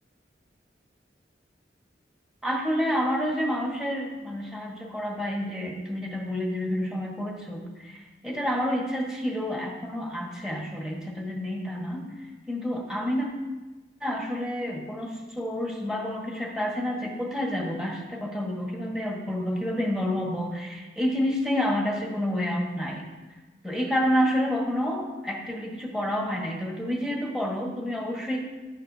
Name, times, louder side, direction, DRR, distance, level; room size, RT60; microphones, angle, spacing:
voice 1, 2.4-12.0 12.5-13.3 14.0-23.0 23.6-28.4, equal, 5° right, -2 dB, 1.5 m, -29 dB
11.0 x 9.2 x 2.8 m, 1.2 s
head